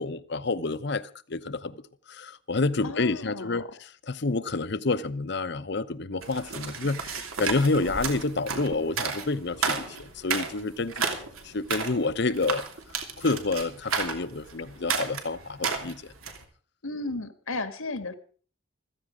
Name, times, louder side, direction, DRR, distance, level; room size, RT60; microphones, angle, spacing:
voice 1, 0.0-1.8 2.1-11.1 11.4-12.6 12.9-16.1, left 3 dB, 55° left, 0.8 m, -29 dB
voice 2, 2.8-3.7 16.8-18.1, left 2 dB, 85° left, 1.7 m, -34 dB
sound 1, 6.2-16.4, right 5 dB, 90° right, 3.0 m, -33 dB
15.5 x 14.5 x 5.1 m
head